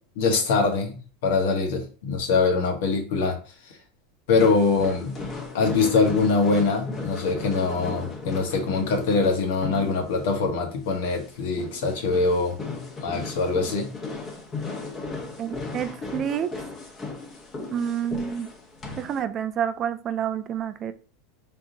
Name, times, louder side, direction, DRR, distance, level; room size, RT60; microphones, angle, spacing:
voice 1, 0.2-3.4 4.3-5.2 5.5-13.9, left 4 dB, 75° left, 1.3 m, -23 dB
sound 1, 4.3-19.2, left 3 dB, 25° left, 1.0 m, -36 dB
voice 2, 15.4-16.5 17.7-18.5 19.0-20.9, right 8 dB, 30° right, 0.4 m, -28 dB
4.4 x 3.6 x 2.6 m
supercardioid pair, 145°, 0 cm